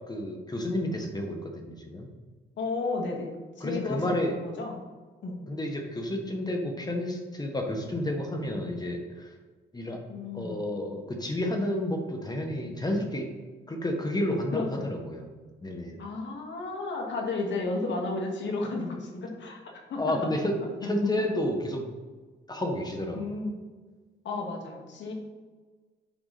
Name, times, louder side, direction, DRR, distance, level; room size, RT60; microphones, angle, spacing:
voice 1, 0.1-2.1 3.6-4.3 5.5-9.3 9.7-10.0 10.3-13.3 13.7-15.2 15.6-16.0 20.0-20.5 20.8-21.8 22.5-23.4, left 1 dB, 20° left, 2 dB, 1.5 m, -30 dB
voice 2, 2.6-4.8 5.2-5.4 10.1-10.6 14.5-14.9 16.0-19.6 19.9-20.3 20.8-21.1 23.1-23.6 24.2-25.1, left 3 dB, 65° left, 1 dB, 2.2 m, -33 dB
9.5 x 5.9 x 4.2 m, 1.4 s
cardioid pair, 90°, 20 cm